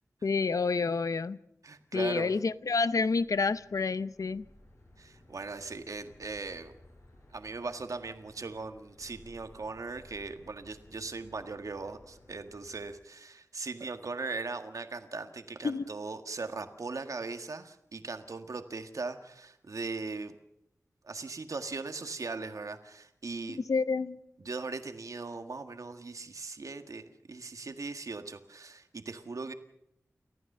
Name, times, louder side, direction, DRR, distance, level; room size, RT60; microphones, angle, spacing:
voice 1, 0.2-1.4 1.9-4.4 15.6-15.9 23.7-24.2, left 4 dB, 85° left, 0.7 m, -29 dB
voice 2, 1.6-2.3 5.0-6.7 7.3-20.3 21.0-23.6 24.4-29.5, right 3 dB, 80° right, 1.7 m, -39 dB
sound 1, 1.9-12.9, left 1 dB, 60° left, 7.3 m, -58 dB
29.5 x 14.5 x 6.7 m
wide cardioid pair, 80°, 6 cm